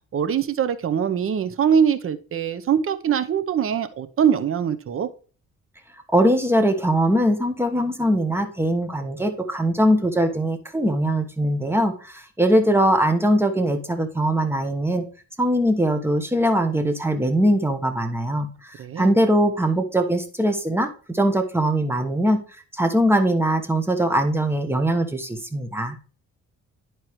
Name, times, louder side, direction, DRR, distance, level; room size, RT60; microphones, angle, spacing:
voice 1, 0.1-5.1 18.8-19.1, right 8 dB, 45° right, 11 dB, 0.8 m, -22 dB
voice 2, 6.1-11.9 12.4-15.0 15.4-18.5 19.0-22.4 22.8-26.0, right 1 dB, 10° right, 6 dB, 1.2 m, -21 dB
10.5 x 4.6 x 3.1 m, 0.38 s
cardioid pair, 90°, 30 cm